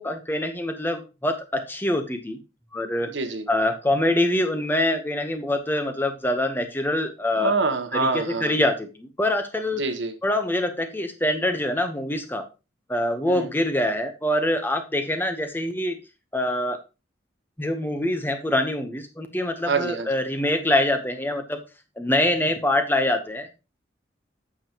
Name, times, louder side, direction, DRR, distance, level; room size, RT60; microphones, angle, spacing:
voice 1, 0.0-2.4 2.7-3.1 3.5-7.5 7.9-9.8 10.2-12.4 12.9-16.0 16.3-16.8 17.6-21.6 22.0-23.5, left 1 dB, 10° left, 7 dB, 0.9 m, -25 dB
voice 2, 3.1-3.5 7.4-8.5 9.8-10.1 13.3-13.5 19.7-20.1, right 4 dB, 80° right, 8 dB, 1.2 m, -25 dB
8.6 x 7.1 x 2.9 m, 0.29 s
head